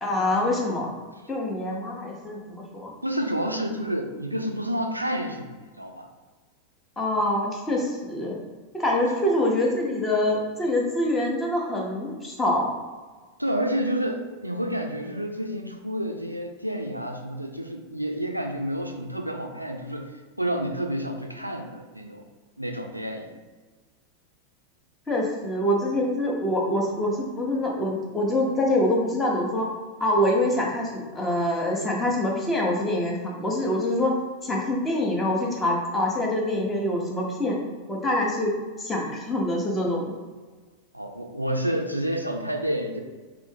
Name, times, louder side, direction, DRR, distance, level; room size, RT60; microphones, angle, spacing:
voice 1, 0.0-0.9 1.3-2.9 7.0-8.4 8.7-12.8 25.1-29.7 30.0-34.1 34.4-37.6 37.9-38.5 38.8-40.0, left 1 dB, 15° left, -1 dB, 0.8 m, -25 dB
voice 2, 3.0-6.1 13.4-22.2 22.6-23.3 40.9-43.0, equal, 90° right, 4 dB, 0.3 m, -29 dB
3.6 x 3.1 x 3.2 m, 1.4 s
figure-of-eight pair, 90°, 0 cm